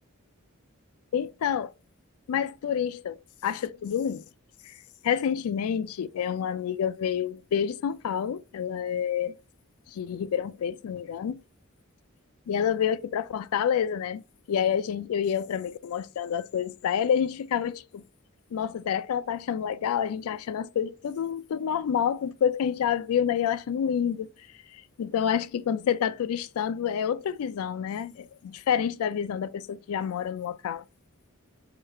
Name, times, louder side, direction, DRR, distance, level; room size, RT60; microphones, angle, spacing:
voice 1, 1.1-1.7 2.3-4.2 4.6-4.8 5.0-9.4 9.9-11.4 12.5-14.2 14.5-18.0 18.5-24.3 24.7-30.8, left 8 dB, 85° left, 0.3 m, -28 dB
4.9 x 2.3 x 4.3 m
head